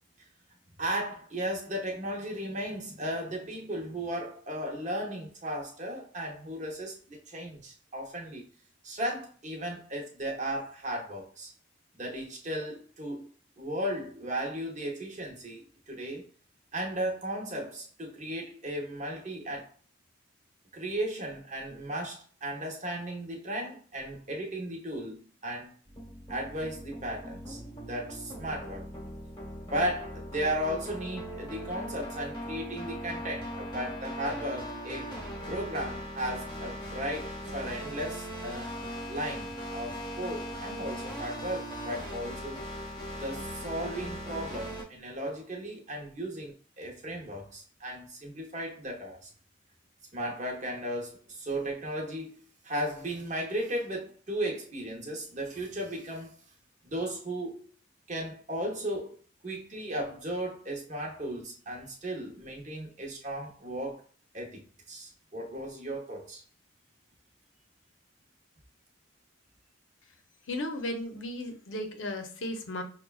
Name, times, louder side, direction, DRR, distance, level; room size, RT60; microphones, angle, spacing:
voice 1, 0.8-8.5 8.8-11.5 11.9-13.3 13.6-16.2 16.7-19.7 20.7-25.7 26.3-28.9 29.7-35.1 35.5-38.7 39.1-42.7 43.2-49.3 50.1-56.4 56.8-57.7 58.1-59.2 59.4-64.0 64.3-64.6 64.9-66.4, right 1 dB, 35° right, 0.8 m, -35 dB
sound 1, 25.9-44.8, equal, 20° left, 1.0 m, -39 dB
voice 2, 70.5-72.8, left 1 dB, 70° left, 0.7 m, -35 dB
6.0 x 2.2 x 2.3 m
head